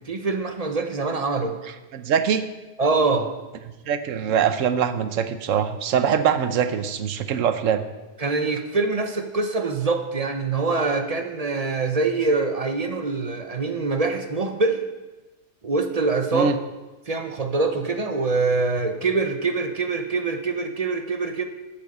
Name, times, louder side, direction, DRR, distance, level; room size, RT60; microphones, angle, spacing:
voice 1, 0.1-1.6 2.8-3.3 8.2-14.8 15.6-16.5 17.1-21.4, right 3 dB, 35° right, 6 dB, 0.8 m, -24 dB
voice 2, 1.9-2.4 3.9-7.8 16.3-16.6, right 7 dB, 90° right, 11 dB, 1.1 m, -23 dB
8.6 x 8.4 x 6.7 m, 1.1 s
omnidirectional pair, 1.3 m